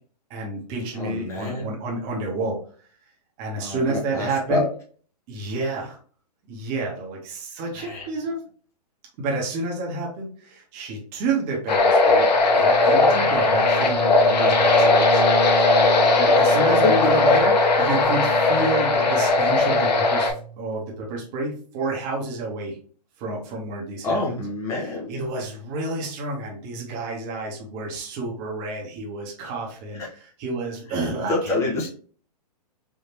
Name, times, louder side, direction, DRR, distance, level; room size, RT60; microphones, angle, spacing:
voice 1, 0.3-2.6 3.4-4.6 5.3-6.0 6.5-8.4 9.2-12.3 12.5-15.8 16.1-22.8 23.2-24.2 25.1-30.0 30.4-31.9, right 3 dB, 30° right, -2 dB, 1.2 m, -30 dB
voice 2, 1.0-1.7 3.5-4.7 7.7-8.1 13.5-13.7 16.8-17.1 24.0-25.1 29.9-30.1 30.9-31.9, left 2 dB, 15° left, -4 dB, 0.9 m, -27 dB
sound 1, 11.7-20.3, left 3 dB, 80° left, 0.9 m, -18 dB
Bowed string instrument, 12.3-20.7, right 6 dB, 85° right, 0.7 m, -33 dB
3.6 x 2.7 x 2.8 m, 0.43 s
hypercardioid pair, 140°, 21 cm